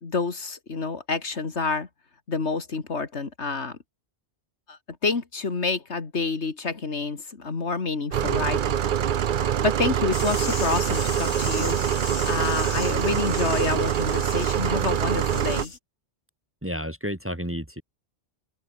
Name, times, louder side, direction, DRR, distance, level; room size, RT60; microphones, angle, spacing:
voice 1, 0.0-1.9 2.3-3.8 4.7-8.6 9.4-11.8 12.3-15.7, left 4 dB, 70° left, 2.4 m, -28 dB
sound 1, 8.1-15.7, right 9 dB, 50° right, 0.7 m, -25 dB
sound 2, 10.1-15.8, left 4 dB, 90° left, 2.9 m, -37 dB
voice 2, 16.6-17.8, equal, 10° right, 2.0 m, -31 dB
open air
omnidirectional pair, 1.2 m